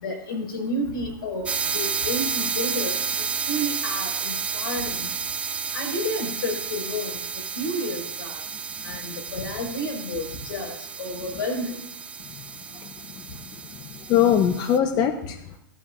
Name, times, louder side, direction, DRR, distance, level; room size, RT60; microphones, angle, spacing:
voice 1, 0.0-5.1 5.7-7.2 7.5-8.4 8.8-11.8, equal, 85° left, 2 dB, 5.7 m, -31 dB
sound 1, 1.5-14.8, right 6 dB, 10° right, 0.4 m, -31 dB
voice 2, 12.8-15.5, left 9 dB, 35° left, 8 dB, 0.9 m, -24 dB
19.0 x 12.5 x 2.6 m, 0.74 s
hypercardioid pair, 130°, 11 cm